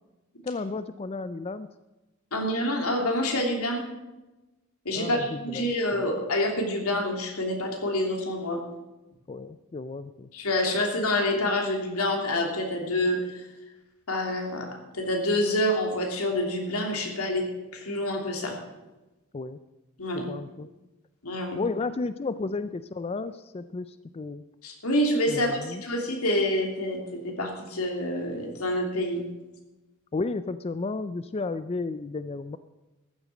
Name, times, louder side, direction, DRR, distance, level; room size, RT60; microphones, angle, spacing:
voice 1, 0.4-1.7 4.9-6.1 9.3-10.3 19.3-19.6 20.1-20.7 21.6-24.4 25.3-25.8 30.1-32.6, left 3 dB, 25° left, 13 dB, 0.4 m, -33 dB
voice 2, 2.3-3.9 4.8-8.6 10.3-13.5 14.1-18.6 20.0-20.3 21.2-21.6 24.6-29.2, left 1 dB, 85° left, 2 dB, 3.1 m, -27 dB
13.5 x 8.1 x 7.6 m, 1.1 s
head